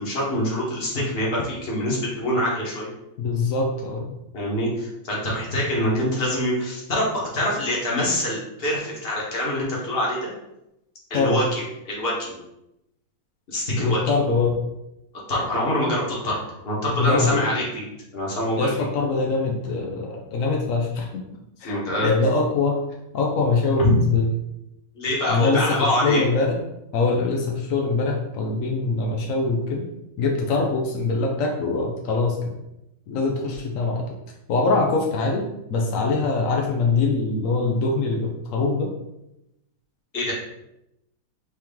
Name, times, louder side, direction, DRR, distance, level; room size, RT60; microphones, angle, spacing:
voice 1, 0.0-2.9 4.3-10.3 11.1-12.4 13.5-14.0 15.3-16.4 16.6-17.9 18.1-18.7 21.6-22.1 23.8-23.9 24.9-26.2 40.1-40.3, left 1 dB, 35° left, -4 dB, 1.3 m, -25 dB
voice 2, 3.2-4.1 11.1-11.4 13.8-14.5 16.9-17.4 18.6-21.1 21.6-22.8 23.1-24.3 25.3-26.5 26.9-29.9 30.2-32.4 33.1-34.0 34.5-38.9, left 3 dB, 90° left, 0 dB, 0.7 m, -23 dB
4.8 x 3.0 x 3.5 m, 0.88 s
omnidirectional pair, 2.2 m